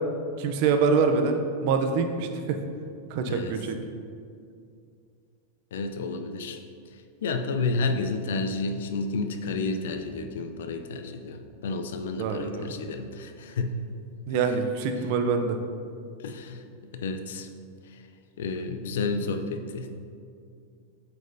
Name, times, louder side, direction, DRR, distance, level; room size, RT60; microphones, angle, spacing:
voice 1, 0.4-2.6 3.1-3.8 12.2-12.6 14.3-15.6, right 5 dB, 45° right, 6 dB, 0.5 m, -25 dB
voice 2, 3.3-3.6 5.7-6.6 7.2-13.8 14.3-14.4 16.2-16.6 16.9-17.5 18.4-19.9, left 3 dB, 85° left, 7 dB, 0.5 m, -31 dB
7.6 x 5.3 x 2.7 m, 2.4 s
supercardioid pair, 170°, 0 cm